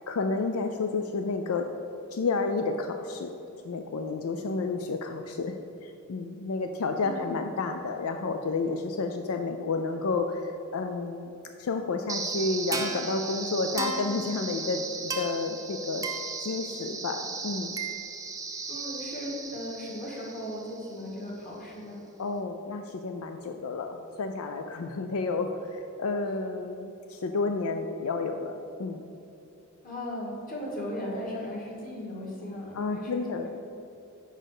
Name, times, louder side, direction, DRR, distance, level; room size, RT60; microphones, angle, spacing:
voice 1, 0.1-1.7 2.1-3.3 3.6-5.6 5.8-11.3 11.6-16.1 16.4-17.8 22.2-28.5 28.8-29.0 32.7-33.5, left 3 dB, 85° left, 5 dB, 0.4 m, -31 dB
voice 2, 7.0-7.4 18.7-22.0 29.8-33.2, left 1 dB, 40° left, -3 dB, 1.9 m, -37 dB
sound 1, 12.1-21.1, right 4 dB, 15° right, 0.6 m, -35 dB
6.5 x 5.0 x 6.5 m, 2.8 s
head